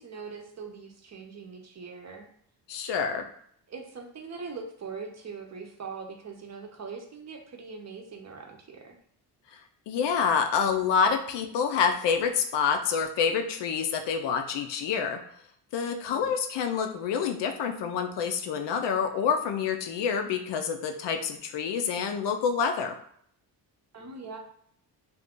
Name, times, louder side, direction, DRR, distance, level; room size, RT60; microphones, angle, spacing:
voice 1, 0.0-2.3 3.7-9.0 16.1-16.3 23.9-24.4, right 5 dB, 40° right, 3 dB, 0.6 m, -41 dB
voice 2, 2.7-3.3 9.5-9.6 9.9-15.2 15.7-23.0, left 6 dB, 80° left, 5 dB, 0.6 m, -27 dB
2.7 x 2.4 x 3.5 m, 0.64 s
cardioid pair, 100°, 42 cm